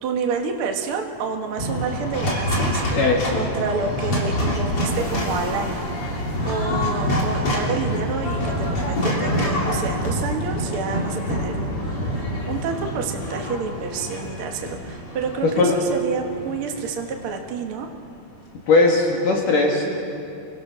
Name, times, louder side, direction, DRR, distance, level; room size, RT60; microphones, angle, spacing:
voice 1, 0.0-3.0 3.3-5.9 6.4-17.9, right 5 dB, 65° right, 3 dB, 1.3 m, -29 dB
sound 1, 1.6-17.8, equal, 35° left, 3.8 m, -26 dB
voice 2, 2.9-3.5 15.4-15.7 18.7-20.0, left 3 dB, 60° left, -1 dB, 3.5 m, -19 dB
29.5 x 22.0 x 6.2 m, 2.6 s
omnidirectional pair, 4.6 m